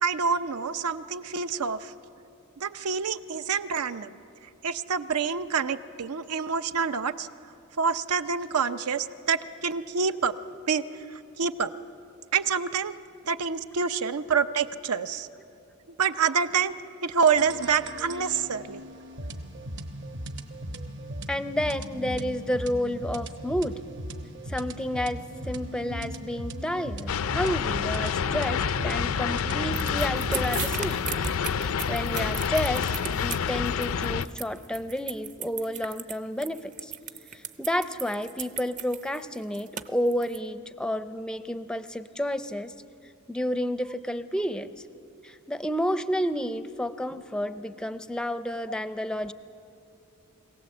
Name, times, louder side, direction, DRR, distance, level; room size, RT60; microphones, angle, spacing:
voice 1, 0.0-1.9 2.6-4.2 4.6-7.3 7.8-10.3 10.7-11.7 12.3-12.9 13.3-15.3 16.0-16.8 17.0-18.8, right 6 dB, 85° right, 12 dB, 0.7 m, -27 dB
sound 1, 17.3-32.6, right 1 dB, 55° right, 1.2 m, -38 dB
voice 2, 21.3-23.7 24.5-31.0 31.4-36.9 37.3-42.7 43.3-44.7 45.2-49.3, equal, 5° left, 11 dB, 0.5 m, -30 dB
sound 2, 27.1-34.3, left 7 dB, 65° left, 0.4 m, -28 dB
sound 3, 29.7-40.4, right 7 dB, 35° right, 0.6 m, -36 dB
23.5 x 17.0 x 7.8 m, 2.9 s
head